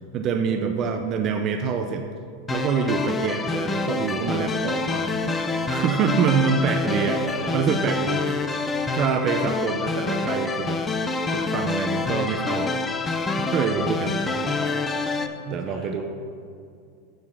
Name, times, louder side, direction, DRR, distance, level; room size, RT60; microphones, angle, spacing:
voice 1, 0.1-2.0 2.5-7.2 7.5-8.5 8.9-10.8 11.3-12.8 13.4-14.2 15.5-16.0, right 6 dB, 40° right, 6 dB, 0.6 m, -26 dB
sound 1, 2.5-15.3, left 3 dB, 15° left, 0.6 m, -27 dB
voice 2, 6.7-7.6 10.1-10.3 14.0-14.9 15.7-16.0, equal, 5° right, -4 dB, 2.2 m, -37 dB
6.9 x 6.5 x 5.8 m, 2.4 s
supercardioid pair, 125°, 0 cm